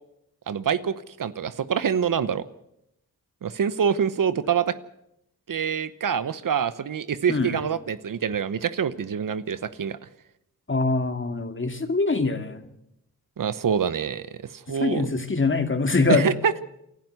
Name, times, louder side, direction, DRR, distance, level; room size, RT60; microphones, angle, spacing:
voice 1, 0.5-2.4 3.4-4.8 5.5-10.0 13.4-14.3 14.5-15.1 16.1-16.6, right 7 dB, 60° right, 15 dB, 1.0 m, -25 dB
voice 2, 10.7-12.7 14.8-16.3, left 3 dB, 35° left, 7 dB, 2.3 m, -23 dB
28.0 x 12.0 x 8.0 m, 0.82 s
cardioid pair, 70°, 37 cm